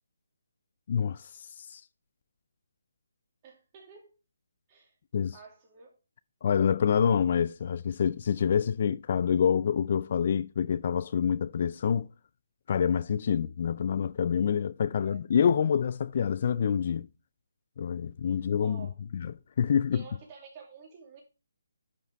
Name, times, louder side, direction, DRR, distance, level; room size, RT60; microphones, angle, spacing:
voice 1, 0.9-1.8 5.1-5.3 6.4-12.1 12.7-17.1 17.8-18.9 19.1-20.0, left 7 dB, 40° left, 0.3 m, -27 dB
voice 2, 3.4-4.1 4.7-4.9 5.3-5.9 15.0-15.2 18.6-19.0 19.9-21.2, right 5 dB, 25° right, 2.5 m, -50 dB
10.5 x 5.3 x 3.4 m
hypercardioid pair, 165°, 0 cm